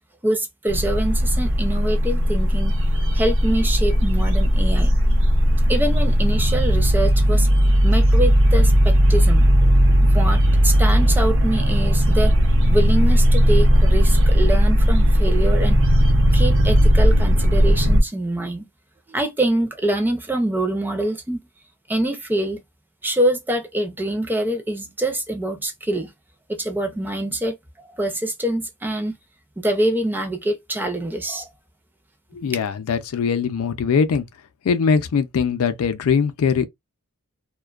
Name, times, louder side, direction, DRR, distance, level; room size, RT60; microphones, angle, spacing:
voice 1, 0.2-2.8 3.1-4.9 5.7-7.5 7.8-9.7 10.0-12.3 12.7-15.8 16.3-18.7 19.1-21.4 21.9-22.6 23.0-26.1 26.5-27.5 27.9-29.1 29.6-31.5, right 1 dB, 10° right, 0.4 m, -25 dB
sound 1, 0.7-18.0, equal, 55° right, 0.6 m, -16 dB
voice 2, 32.3-34.3 34.6-36.7, left 6 dB, 70° left, 0.4 m, -21 dB
2.4 x 2.2 x 2.3 m
head